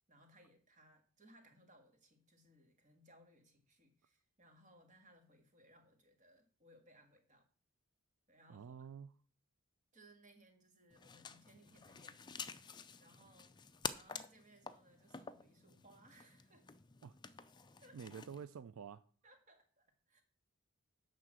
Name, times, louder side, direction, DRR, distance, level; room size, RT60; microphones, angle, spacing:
voice 1, 0.1-7.5 8.3-8.9 9.9-16.7 17.8-18.0 19.2-20.2, right 1 dB, 35° right, 1.8 m, -66 dB
voice 2, 8.5-9.1 17.0-17.2 17.9-19.0, right 7 dB, 70° right, 0.4 m, -49 dB
sound 1, 10.9-18.5, left 6 dB, 20° left, 0.4 m, -49 dB
11.0 x 3.8 x 7.5 m
head